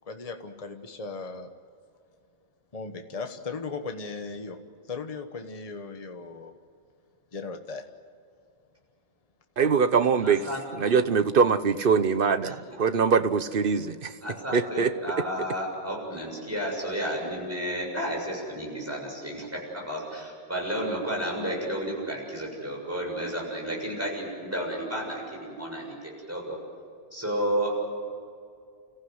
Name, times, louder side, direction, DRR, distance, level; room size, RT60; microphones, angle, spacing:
voice 1, 0.1-1.5 2.7-4.6 4.9-6.5 7.3-7.9, left 4 dB, 35° left, 1.3 m, -37 dB
voice 2, 9.6-10.4 10.7-14.1 14.5-14.9, right 6 dB, 55° right, 1.0 m, -23 dB
voice 3, 10.2-10.6 12.4-13.0 14.2-26.6 27.1-27.7, equal, 10° right, 7.0 m, -32 dB
29.5 x 15.0 x 9.4 m
omnidirectional pair, 1.2 m